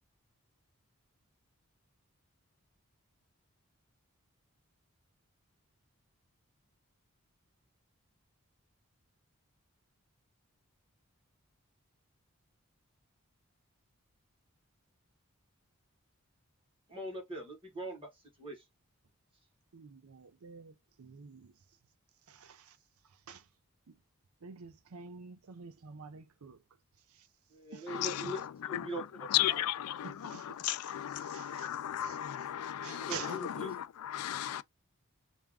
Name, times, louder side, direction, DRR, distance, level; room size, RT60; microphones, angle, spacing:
voice 1, 16.9-18.1 18.4-18.6 27.5-29.6 32.9-33.7, right 1 dB, 25° right, 1.5 m, -42 dB
voice 2, 19.7-21.5 22.3-22.8 23.0-23.5 23.9-24.0 24.4-26.6 27.1-27.3 27.7-28.3 30.0-30.6 31.2-31.7 32.0-32.2 32.8-33.4, right 6 dB, 75° right, 0.5 m, -49 dB
voice 3, 27.9-34.6, left 12 dB, 90° left, 0.3 m, -35 dB
3.4 x 2.5 x 3.5 m
head